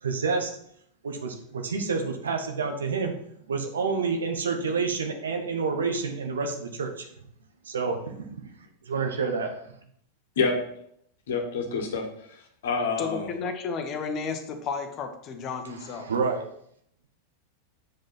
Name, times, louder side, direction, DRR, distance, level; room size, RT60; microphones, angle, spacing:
voice 1, 0.0-0.5 1.0-3.1 3.5-7.1 7.6-8.5 8.8-9.6 15.6-16.4, right 4 dB, 70° right, 4 dB, 1.2 m, -29 dB
voice 2, 11.3-12.4 12.6-13.3, left 4 dB, 60° left, 3 dB, 1.5 m, -27 dB
voice 3, 13.0-16.1, left 5 dB, 35° left, 6 dB, 1.2 m, -33 dB
7.7 x 5.2 x 5.7 m, 0.70 s
figure-of-eight pair, 90°, 0 cm